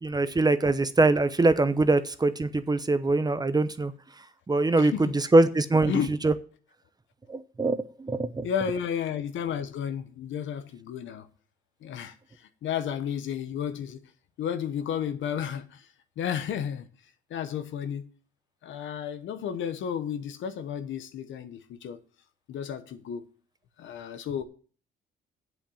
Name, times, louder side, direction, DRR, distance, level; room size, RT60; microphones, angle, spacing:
voice 1, 0.0-3.9 4.5-5.9 6.2-6.3 7.3-8.5, right 2 dB, 20° right, 0.8 m, -23 dB
voice 2, 4.8-5.1 5.9-6.1 8.4-11.3 11.8-14.0 14.4-16.9 17.3-18.1 18.6-22.0 22.5-23.2 23.8-24.4, left 8 dB, 75° left, 1.0 m, -32 dB
8.0 x 7.6 x 7.1 m
cardioid pair, 90°, 20 cm